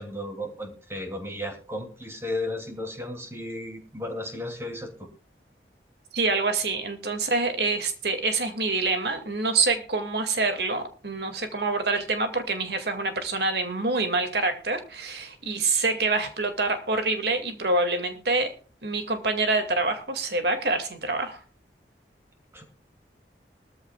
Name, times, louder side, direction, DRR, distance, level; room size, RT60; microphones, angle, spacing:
voice 1, 0.0-5.1 22.5-22.6, left 1 dB, 15° right, 4 dB, 2.7 m, -34 dB
voice 2, 6.1-18.5 18.8-21.4, right 3 dB, 70° right, 7 dB, 2.2 m, -26 dB
20.0 x 14.0 x 2.4 m, 0.34 s
head